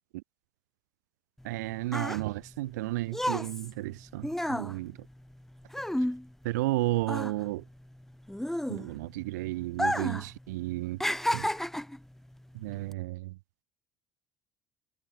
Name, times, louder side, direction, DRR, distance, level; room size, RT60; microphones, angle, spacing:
sound 1, 1.4-6.8 7.0-9.2 9.7-10.3 10.6-12.0 12.7-12.9, left 1 dB, 5° left, 2.1 m, -32 dB
voice 1, 1.4-5.0 6.4-7.6 8.7-11.0 11.3-11.5 12.5-13.4, right 19 dB, 70° right, 1.1 m, -33 dB
figure-of-eight pair, 60°, 10 cm